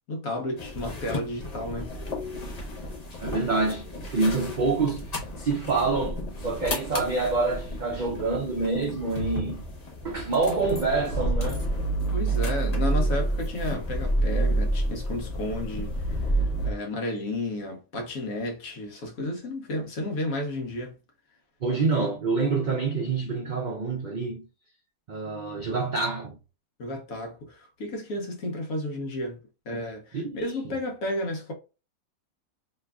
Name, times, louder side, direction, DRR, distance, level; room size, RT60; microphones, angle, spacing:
voice 1, 0.1-1.9 12.1-21.0 26.8-29.4 29.7-31.5, left 1 dB, 70° left, 1.3 m, -32 dB
sound 1, 0.6-16.7, right 1 dB, 35° left, 0.7 m, -30 dB
voice 2, 3.1-9.6 10.0-11.7 12.1-12.4 21.6-24.5 25.1-26.4 30.1-30.8, right 3 dB, 80° right, 0.4 m, -27 dB
3.5 x 3.1 x 2.2 m
omnidirectional pair, 1.5 m